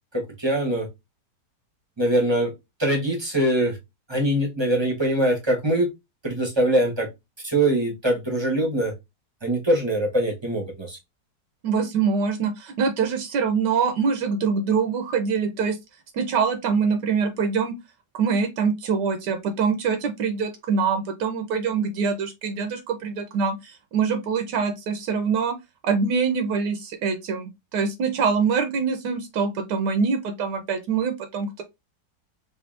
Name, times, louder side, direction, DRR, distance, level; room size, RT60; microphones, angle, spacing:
voice 1, 0.1-0.9 2.0-2.5 2.8-3.8 4.1-5.9 6.2-7.1 7.4-8.9 9.4-11.0, right 1 dB, 20° right, 0.7 m, -23 dB
voice 2, 11.6-15.8 16.1-17.7 18.1-25.5 25.8-31.6, right 5 dB, 80° right, 1.3 m, -24 dB
5.0 x 2.6 x 2.5 m
omnidirectional pair, 1.9 m